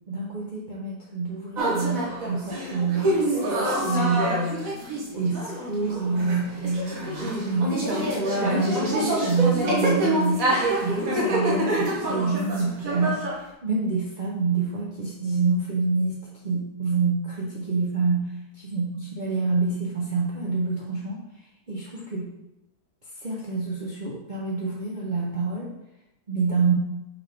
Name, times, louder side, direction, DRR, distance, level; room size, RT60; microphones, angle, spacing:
voice 1, 0.1-3.1 3.8-4.6 5.1-10.4 10.8-13.2 13.6-18.9 19.2-21.2 21.7-22.2 23.2-25.7 26.3-26.7, right 4 dB, 35° right, -5 dB, 0.9 m, -27 dB
sound 1, 1.6-13.4, right 1 dB, 60° right, 1.7 m, -26 dB
5.8 x 3.8 x 5.4 m, 0.88 s
omnidirectional pair, 1.7 m